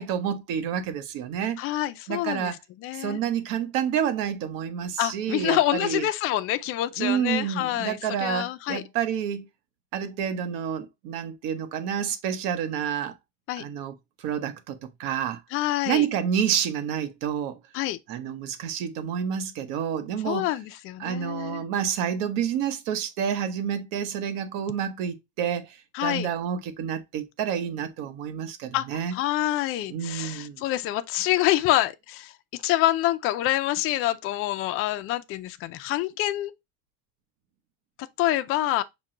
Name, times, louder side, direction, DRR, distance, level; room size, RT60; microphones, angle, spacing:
voice 1, 0.0-1.6 2.1-2.6 2.9-6.0 7.0-9.5 9.9-13.1 13.6-13.9 14.2-15.4 15.9-17.6 18.1-20.5 21.0-29.1 29.9-30.6, right 8 dB, 70° right, 1.0 m, -29 dB
voice 2, 1.6-3.2 5.0-8.8 13.5-13.6 15.5-16.1 17.7-18.0 20.2-21.6 25.9-26.3 28.7-32.3 32.6-36.5 38.2-38.8, left 14 dB, 40° left, 0.4 m, -26 dB
6.1 x 2.2 x 3.7 m
cardioid pair, 150°, 34 cm